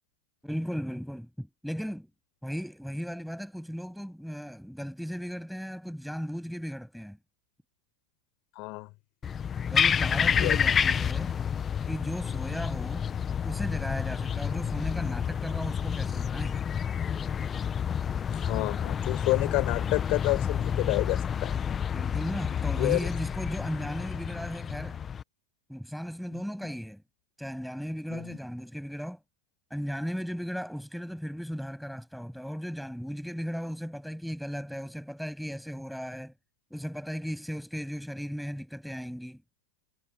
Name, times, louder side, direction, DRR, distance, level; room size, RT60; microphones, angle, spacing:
voice 1, 0.4-2.1 2.4-7.2 9.7-11.3 11.9-13.1 13.4-16.6 21.9-25.0 25.7-27.0 27.4-29.2 29.7-36.3 36.7-39.4, equal, ahead, 7.4 m, -36 dB
voice 2, 8.5-8.9 10.4-10.6 18.3-21.5 22.8-23.0 26.3-26.4 28.1-28.4, left 25 dB, 40° left, 4.7 m, -29 dB
sound 1, 9.2-25.2, left 7 dB, 15° left, 0.8 m, -29 dB
supercardioid pair, 155°, 0 cm